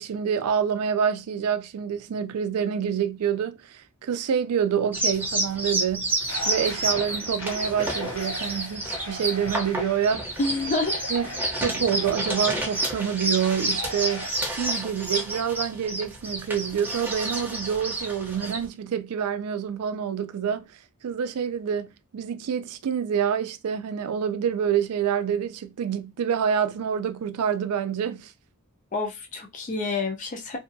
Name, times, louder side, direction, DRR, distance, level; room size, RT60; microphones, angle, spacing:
voice 1, 0.0-6.2 6.5-10.4 11.1-20.7 21.0-28.3, right 8 dB, 85° right, 0.4 m, -27 dB
sound 1, 4.9-18.7, right 1 dB, 10° right, 0.6 m, -29 dB
sound 2, 6.3-14.3, left 2 dB, 70° left, 1.0 m, -40 dB
voice 2, 10.4-11.0 28.9-30.6, left 3 dB, 35° left, 0.5 m, -28 dB
2.6 x 2.3 x 2.6 m
head